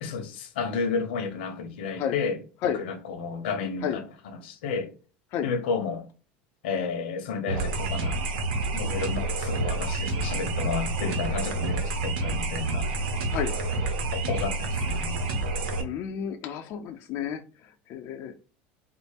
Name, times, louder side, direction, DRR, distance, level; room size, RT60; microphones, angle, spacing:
voice 1, 0.0-2.4 2.6-4.9 5.4-6.1 6.6-8.2 8.7-12.9 14.1-15.2, left 5 dB, 90° left, 0.8 m, -32 dB
sound 1, 7.5-15.8, right 2 dB, 85° right, 0.8 m, -28 dB
voice 2, 15.8-18.4, left 9 dB, 55° left, 0.4 m, -31 dB
4.1 x 2.0 x 3.4 m
supercardioid pair, 115°, 5 cm